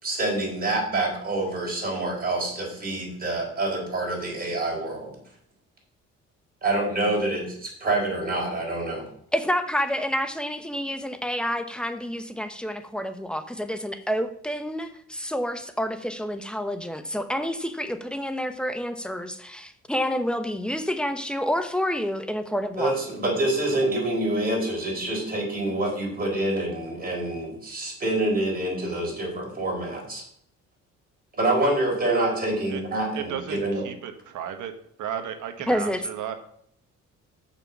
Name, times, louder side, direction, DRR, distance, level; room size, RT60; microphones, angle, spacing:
voice 1, 0.0-5.2 6.6-9.0 22.8-30.2 31.4-33.8, right 2 dB, 30° right, -2 dB, 4.5 m, -26 dB
voice 2, 9.3-23.0 35.7-36.0, equal, 5° left, 9 dB, 1.0 m, -28 dB
voice 3, 33.1-34.7 35.0-36.4, right 9 dB, 80° right, 7 dB, 1.3 m, -34 dB
7.0 x 6.0 x 7.3 m, 0.68 s
cardioid pair, 90°, 30 cm